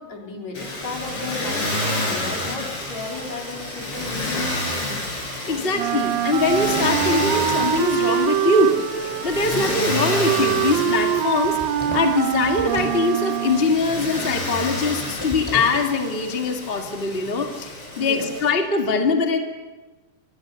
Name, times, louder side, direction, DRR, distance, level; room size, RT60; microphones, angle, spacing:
voice 1, 0.0-4.4 5.4-5.7 9.5-9.8 18.0-18.3, left 3 dB, 60° left, 1 dB, 4.9 m, -34 dB
Motor vehicle (road), 0.5-18.5, left 1 dB, 40° left, 7.7 m, -29 dB
voice 2, 5.5-8.7 9.0-11.6 11.9-19.4, left 3 dB, 25° left, 4 dB, 1.5 m, -22 dB
Wind instrument woodwind instrument, 5.7-13.9, right 11 dB, 70° right, 1.9 m, -24 dB
sound 1, 11.4-13.1 15.2-15.8, left 1 dB, 10° left, 3.3 m, -34 dB
26.0 x 23.5 x 6.9 m, 1.2 s
omnidirectional pair, 3.7 m